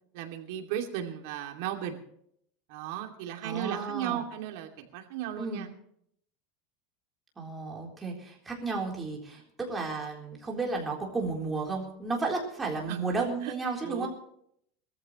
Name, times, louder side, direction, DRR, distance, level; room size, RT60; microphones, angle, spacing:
voice 1, 0.1-2.0 2.7-5.7 12.9-13.0 13.4-13.5 13.8-14.1, right 11 dB, 60° right, 3 dB, 2.6 m, -35 dB
voice 2, 3.4-4.2 5.4-5.7 7.4-14.1, right 3 dB, 10° right, -1 dB, 3.9 m, -33 dB
21.5 x 14.0 x 3.2 m, 0.69 s
supercardioid pair, 155°, 0 cm